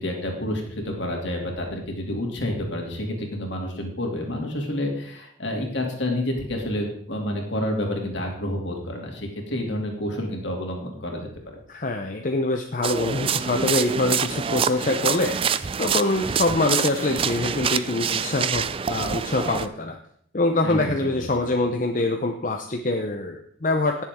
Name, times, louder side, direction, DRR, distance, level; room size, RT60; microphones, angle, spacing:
voice 1, 0.0-11.3 20.6-21.3, left 1 dB, 60° left, 1 dB, 2.7 m, -29 dB
voice 2, 11.7-20.0 20.3-24.0, left 2 dB, 40° left, 4 dB, 0.7 m, -25 dB
sound 1, 12.8-19.7, right 7 dB, 25° right, 0.3 m, -26 dB
18.5 x 7.3 x 3.7 m, 0.65 s
head